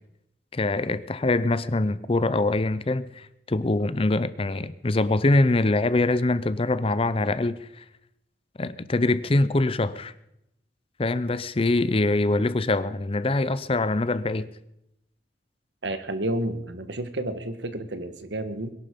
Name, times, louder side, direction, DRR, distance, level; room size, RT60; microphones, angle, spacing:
voice 1, 0.5-7.8 8.6-10.1 11.0-14.5, left 2 dB, 30° left, 0.6 m, -24 dB
voice 2, 15.8-18.7, right 1 dB, 75° right, 1.5 m, -30 dB
22.0 x 11.5 x 5.3 m
head